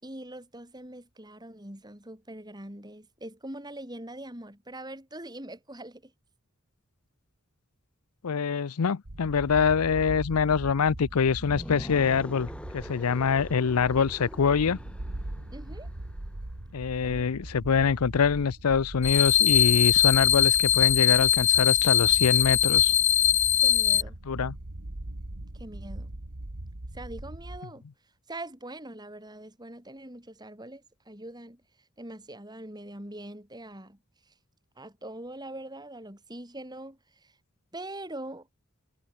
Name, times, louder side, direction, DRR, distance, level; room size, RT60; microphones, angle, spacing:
voice 1, 0.0-6.1 15.5-15.9 17.0-17.5 23.6-24.2 25.5-26.1 26.9-27.8 28.3-31.6 32.0-34.0 34.3-34.4 34.8-37.3 37.7-38.5, right 1 dB, 20° right, 6.1 m, -42 dB
voice 2, 8.2-14.8 16.7-22.9 24.3-24.5, left 6 dB, 90° left, 0.6 m, -25 dB
sound 1, 9.0-27.6, right 1 dB, 85° right, 2.1 m, -40 dB
sound 2, 11.3-16.4, equal, 5° left, 7.2 m, -44 dB
sound 3, 19.0-24.0, left 11 dB, 30° left, 0.4 m, -21 dB
head